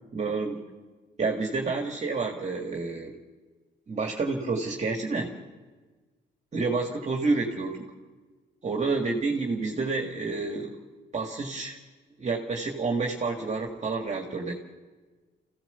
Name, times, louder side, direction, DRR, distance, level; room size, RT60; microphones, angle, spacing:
voice 1, 0.1-0.6 1.2-3.1 3.9-5.3 6.5-7.8 8.6-10.8 11.1-11.8 12.2-14.5, right 3 dB, 35° right, 2 dB, 2.0 m, -29 dB
26.0 x 15.5 x 6.9 m, 1.3 s
cardioid pair, 90°, 20 cm